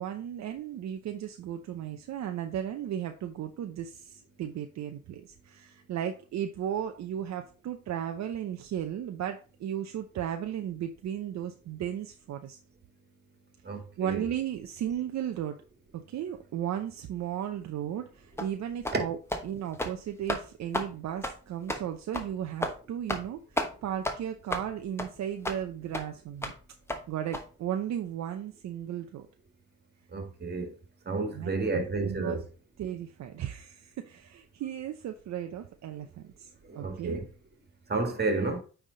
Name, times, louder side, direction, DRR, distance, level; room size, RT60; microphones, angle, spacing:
voice 1, 0.0-12.6 14.0-15.6 15.9-19.2 19.4-26.5 27.1-29.3 31.3-32.4 32.8-37.2, right 10 dB, 65° right, 0.7 m, -35 dB
voice 2, 13.6-14.2 18.9-19.0 30.1-30.7 31.1-32.4 36.7-37.3 37.9-38.6, right 3 dB, 35° right, 1.9 m, -31 dB
sound 1, 18.4-18.5 18.8-19.0 19.3-19.4 19.7-20.0 20.3-20.4 20.7-20.9 21.2-21.4 21.7-21.8 22.1-22.3 22.6-22.8 23.1-23.3 23.6-23.7 24.0-24.2 24.5-24.7 25.0-25.1 25.4-25.6 25.9-26.0 26.4-26.6 26.9-27.0 27.3-27.4, left 1 dB, 10° left, 1.1 m, -32 dB
9.0 x 3.5 x 3.9 m
cardioid pair, 90°, 30 cm